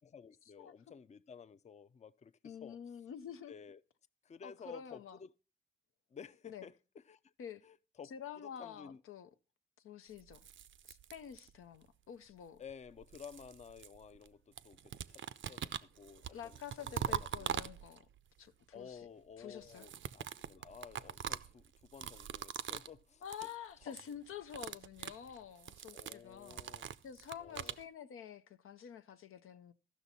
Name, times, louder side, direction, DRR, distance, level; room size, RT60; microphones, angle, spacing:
voice 1, 0.1-2.8 3.5-3.8 4.2-5.3 6.1-7.3 7.6-8.1 8.4-9.0 12.6-14.9 15.4-17.5 18.7-23.2 23.9-24.0 25.9-26.9 27.4-27.7, left 7 dB, 35° left, 0.4 m, -53 dB
voice 2, 2.4-3.5 4.4-5.2 6.5-6.7 7.4-7.6 8.0-9.3 9.8-10.5 10.9-12.6 16.3-18.1 18.4-19.1 19.4-19.9 23.2-26.7 27.0-29.7, left 8 dB, 85° left, 0.5 m, -48 dB
sound 1, 10.2-11.8 12.7-14.3 14.6-18.2 19.6-23.0 23.2-23.6 23.8-24.1 24.4-27.8, right 9 dB, 65° right, 0.4 m, -43 dB
14.0 x 6.1 x 4.1 m
cardioid pair, 55°, 21 cm